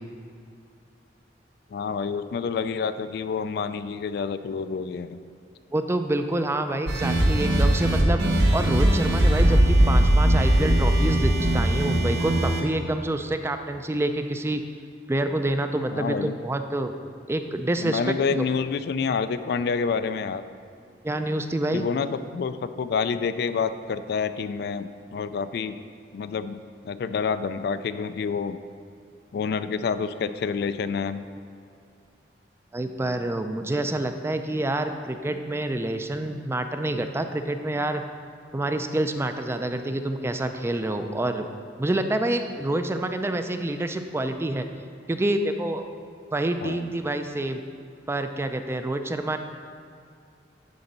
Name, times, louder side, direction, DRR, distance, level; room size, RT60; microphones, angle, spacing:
voice 1, 1.7-5.2 15.9-16.4 17.8-20.4 21.7-25.8 26.1-26.6 26.8-28.6 29.3-31.2 46.6-46.9, left 5 dB, 65° left, 12 dB, 0.3 m, -28 dB
voice 2, 5.7-8.2 8.5-14.6 15.1-16.9 17.3-18.5 21.0-21.8 32.7-38.0 38.5-41.5 41.8-44.7 45.1-45.9 46.3-47.6 48.1-49.4, right 1 dB, 15° right, 7 dB, 0.4 m, -27 dB
sound 1, 6.9-12.6, right 1 dB, 65° right, 0.9 m, -20 dB
10.5 x 3.9 x 5.3 m, 2.4 s
head